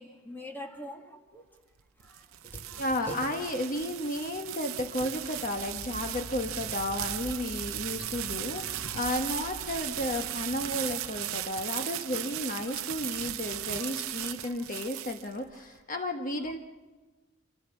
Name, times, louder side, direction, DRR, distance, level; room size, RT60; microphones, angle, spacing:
voice 1, 0.0-1.5 2.0-3.2 5.0-5.1 7.1-7.2 8.0-9.1 12.7-14.6, equal, 10° left, 2 dB, 1.7 m, -46 dB
sound 1, 1.8-15.6, right 13 dB, 85° right, 0.6 m, -37 dB
voice 2, 2.8-16.6, left 1 dB, 40° left, 4 dB, 1.2 m, -33 dB
sound 2, 5.1-11.5, left 1 dB, 65° left, 1.0 m, -46 dB
28.5 x 14.0 x 7.1 m, 1.2 s
head